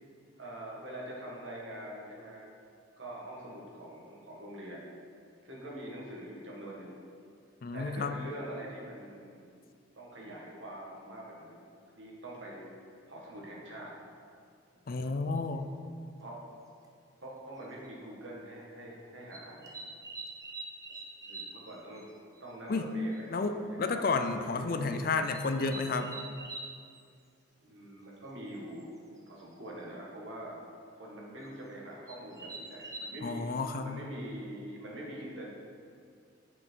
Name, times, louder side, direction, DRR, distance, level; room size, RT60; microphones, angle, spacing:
voice 1, 0.4-2.5 3.0-4.9 5.4-7.0 7.7-9.6 9.9-11.7 12.0-12.7 13.1-13.9 16.2-16.4 17.2-19.7 21.2-22.1 22.4-24.1 24.4-24.6 24.9-25.0 27.6-28.9 29.3-30.6 31.0-33.4 33.8-35.5, right 1 dB, 75° right, -3 dB, 1.8 m, -44 dB
voice 2, 7.6-8.2 14.9-15.7 22.7-23.0 23.3-26.2 33.2-34.0, left 3 dB, 45° left, 7 dB, 0.4 m, -31 dB
sound 1, 15.4-15.5 16.8-16.9 17.6-17.9 19.3-21.6 21.9-22.0 22.4-22.5 22.8-22.9 23.1-23.2 24.0-24.3 25.3-26.7 28.8-28.9 29.2-29.5 31.4-31.5 32.1-33.0, right 3 dB, 15° right, 0.6 m, -44 dB
7.3 x 5.9 x 4.6 m, 2.3 s
head